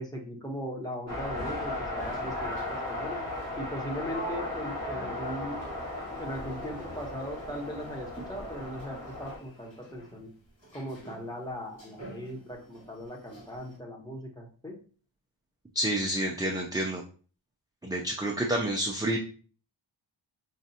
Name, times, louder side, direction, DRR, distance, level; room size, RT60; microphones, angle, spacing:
voice 1, 0.0-3.2 3.6-5.6 6.2-10.3 10.7-14.8, equal, 10° left, -1 dB, 0.9 m, -39 dB
sound 1, 1.1-9.4, left 2 dB, 35° left, 1.5 m, -36 dB
sound 2, 2.0-13.8, right 3 dB, 65° left, 2.0 m, -47 dB
voice 2, 15.7-17.0 17.8-19.2, right 1 dB, 10° right, -1 dB, 0.4 m, -29 dB
5.0 x 2.4 x 2.7 m, 0.40 s
wide cardioid pair, 80°, 48 cm